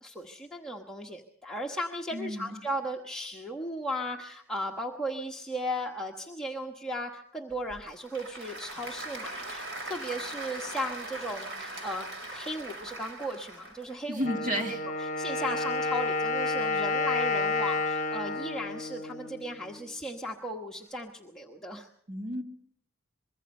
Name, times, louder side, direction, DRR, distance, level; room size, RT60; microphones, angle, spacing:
voice 1, 0.0-14.2 15.0-21.9, equal, 5° left, -1 dB, 1.2 m, -36 dB
voice 2, 2.1-2.6 14.1-14.9 22.1-22.4, equal, 35° right, 4 dB, 1.9 m, -32 dB
Applause / Crowd, 7.5-14.0, right 2 dB, 55° right, 5.6 m, -40 dB
Wind instrument woodwind instrument, 14.2-19.9, left 3 dB, 35° left, 1.1 m, -30 dB
25.0 x 22.5 x 5.4 m, 0.71 s
head